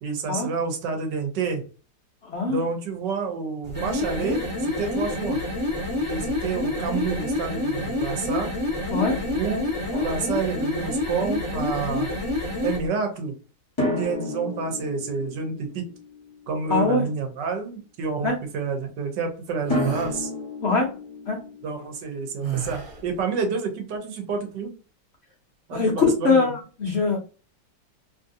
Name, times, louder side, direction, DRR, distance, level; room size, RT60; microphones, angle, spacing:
voice 1, 0.0-1.6 2.5-5.4 6.1-8.5 9.3-9.7 10.0-12.1 12.6-13.3 13.8-15.8 16.5-20.3 21.6-24.7 25.7-26.6, right 5 dB, 70° right, 5 dB, 1.4 m, -29 dB
sound 1, 3.6-12.9, left 2 dB, 25° right, 1.4 m, -28 dB
Drum, 9.9-11.3 13.8-16.8 19.7-22.6, left 2 dB, 20° left, 0.8 m, -32 dB
voice 2, 16.7-17.0 18.2-18.3 20.6-20.9 21.3-21.4 25.7-27.2, left 4 dB, 75° left, -1 dB, 0.6 m, -22 dB
sound 2, 19.6-20.2 22.4-23.1, right 9 dB, 55° right, 1.1 m, -30 dB
3.1 x 2.6 x 2.6 m, 0.34 s
omnidirectional pair, 2.1 m